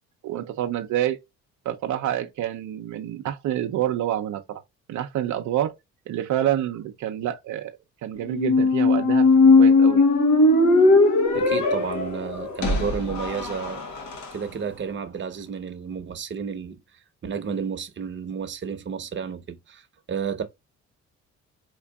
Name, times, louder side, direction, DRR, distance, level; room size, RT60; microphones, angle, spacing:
voice 1, 0.2-1.2 1.6-4.6 4.9-5.7 6.1-7.8 8.0-9.3 9.6-10.1, right 12 dB, 75° right, 0.6 m, -27 dB
Squeak, 8.3-14.3, left 3 dB, 70° left, 1.1 m, -19 dB
voice 2, 11.3-13.8 14.3-16.8 17.2-19.8 20.1-20.4, right 6 dB, 40° right, 0.8 m, -31 dB
4.4 x 2.5 x 2.2 m
cardioid pair, 90°, 30 cm